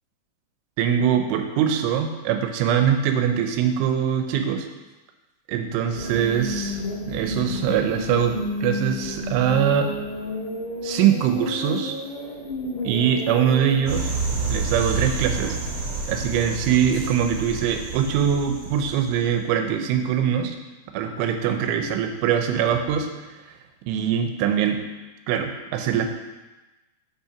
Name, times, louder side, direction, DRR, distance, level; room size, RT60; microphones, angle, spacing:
voice 1, 0.8-4.7 5.5-6.8 7.1-9.9 10.8-11.9 12.8-14.1 14.5-15.6 16.1-20.6 20.9-23.1 23.9-24.8 25.3-26.2, right 8 dB, 90° right, 6 dB, 3.2 m, -22 dB
sound 1, 5.9-13.8, left 1 dB, 55° left, 2.9 m, -31 dB
sound 2, 13.9-19.3, right 4 dB, 40° right, 3.1 m, -29 dB
6.8 x 5.7 x 5.8 m, 1.1 s
omnidirectional pair, 5.4 m